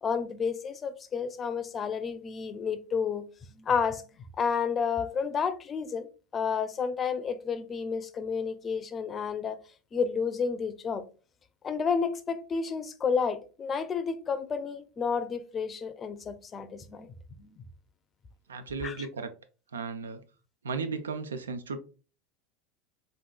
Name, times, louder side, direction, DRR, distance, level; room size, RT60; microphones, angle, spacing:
voice 1, 0.0-3.2 3.5-6.1 6.3-9.6 9.9-11.0 11.6-17.6 18.8-19.1, left 6 dB, 30° left, 0.4 m, -31 dB
voice 2, 18.5-19.3 19.7-20.2 20.6-21.8, right 4 dB, 90° right, 0.3 m, -35 dB
3.6 x 2.5 x 2.2 m
hypercardioid pair, 85°, 0 cm